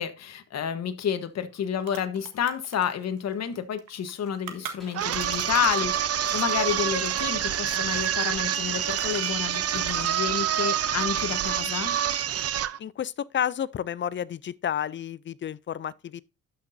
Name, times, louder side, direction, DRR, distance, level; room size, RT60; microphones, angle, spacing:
voice 1, 0.0-5.9 6.3-12.0, left 8 dB, 60° left, 1.2 m, -30 dB
sound 1, 1.2-1.3 1.5-5.9 6.2-10.2 10.5-11.7 12.0-12.6, right 8 dB, 80° right, 1.6 m, -43 dB
Gunshot gunfire, 4.8-10.2, equal, ahead, 4.5 m, -49 dB
sound 2, 4.9-12.8, right 10 dB, 55° right, 0.7 m, -27 dB
voice 2, 12.8-16.2, left 9 dB, 40° left, 0.4 m, -31 dB
12.0 x 6.0 x 2.6 m
cardioid pair, 90°, 30 cm